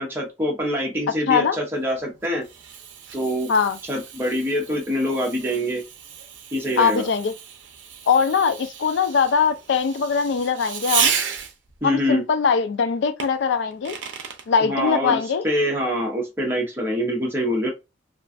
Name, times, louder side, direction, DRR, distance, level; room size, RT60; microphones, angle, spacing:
voice 1, 0.0-2.4 3.1-3.5 3.8-5.8 6.5-7.1 11.8-12.2 14.6-17.7, equal, 10° right, 0.6 m, -25 dB
voice 2, 1.3-1.6 3.5-3.8 6.8-7.3 8.1-11.1 11.8-14.0 14.5-15.4, left 6 dB, 70° left, 0.4 m, -21 dB
Fireworks, 1.8-11.8 13.2-14.5, right 8 dB, 75° right, 0.5 m, -32 dB
2.4 x 2.3 x 2.4 m
head